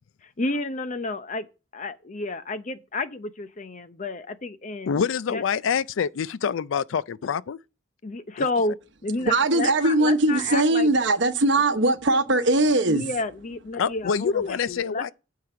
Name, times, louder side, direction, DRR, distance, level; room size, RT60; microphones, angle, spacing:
voice 1, 0.2-1.5 1.7-5.0 5.3-5.4 8.0-8.8 9.0-10.9 12.9-15.1, left 2 dB, 40° left, 0.7 m, -31 dB
voice 2, 4.9-7.6 13.7-15.1, left 6 dB, 80° left, 0.4 m, -26 dB
voice 3, 9.2-13.0, right 2 dB, 65° right, 1.0 m, -20 dB
9.4 x 4.7 x 6.8 m
head